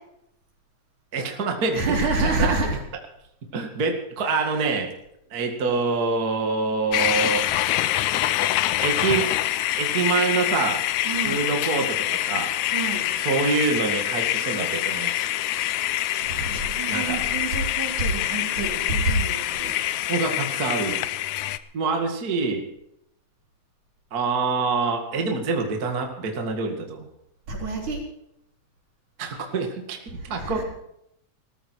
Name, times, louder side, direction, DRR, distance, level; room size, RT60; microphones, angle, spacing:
voice 1, 1.1-2.8 3.5-4.9 5.3-7.4 8.8-9.3 9.8-10.8 11.2-12.5 13.2-15.3 16.9-17.2 20.1-21.1 21.7-22.7 24.1-27.1 29.2-30.6, right 4 dB, 35° right, 3 dB, 2.1 m, -26 dB
voice 2, 1.7-2.8 4.2-4.4 11.1-11.5 12.7-13.1 16.2-20.1 27.5-28.0 30.3-30.6, right 2 dB, 70° right, -1 dB, 5.7 m, -27 dB
sound 1, 6.9-21.6, left 14 dB, 75° left, 1.9 m, -25 dB
19.5 x 14.0 x 4.6 m, 0.77 s
omnidirectional pair, 3.6 m